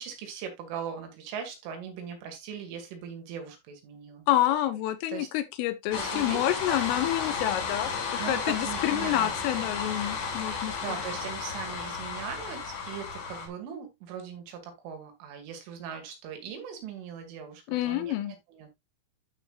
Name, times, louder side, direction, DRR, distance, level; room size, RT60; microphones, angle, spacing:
voice 1, 0.0-4.3 5.1-5.3 5.9-6.4 6.7-6.8 8.2-9.3 10.8-18.7, right 7 dB, 75° right, 4.7 m, -40 dB
voice 2, 4.3-10.8 17.7-18.3, left 13 dB, 80° left, 3.6 m, -28 dB
sound 1, 5.9-13.5, left 5 dB, 60° left, 4.5 m, -33 dB
12.5 x 5.8 x 2.4 m
omnidirectional pair, 5.7 m